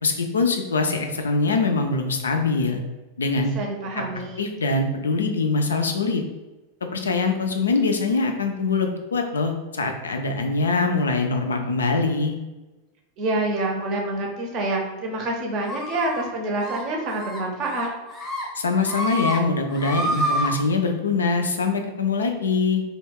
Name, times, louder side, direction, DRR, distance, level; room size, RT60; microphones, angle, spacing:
voice 1, 0.0-2.8 3.2-3.5 3.9-4.0 4.4-6.2 6.9-12.4 18.6-22.8, left 3 dB, 70° left, 4 dB, 0.3 m, -23 dB
voice 2, 3.5-4.4 13.2-17.9, right 2 dB, 35° right, 0 dB, 0.6 m, -27 dB
sound 1, 15.7-16.3 16.6-16.8 17.1-17.4 17.7-18.4 18.8-19.4 19.7-20.5, right 1 dB, 5° left, 0.8 m, -28 dB
2.2 x 2.2 x 3.3 m, 1.1 s
figure-of-eight pair, 90°, 0 cm